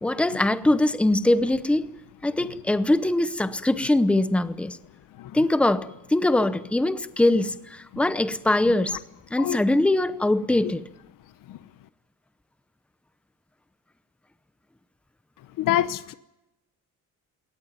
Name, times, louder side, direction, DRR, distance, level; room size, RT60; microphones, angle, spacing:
voice 1, 0.0-1.9 2.2-4.8 5.3-9.0 9.3-10.8, left 1 dB, 5° left, 0.8 m, -22 dB
voice 2, 15.6-16.1, left 12 dB, 80° left, 1.0 m, -24 dB
21.5 x 18.5 x 9.4 m
cardioid pair, 165°, 32 cm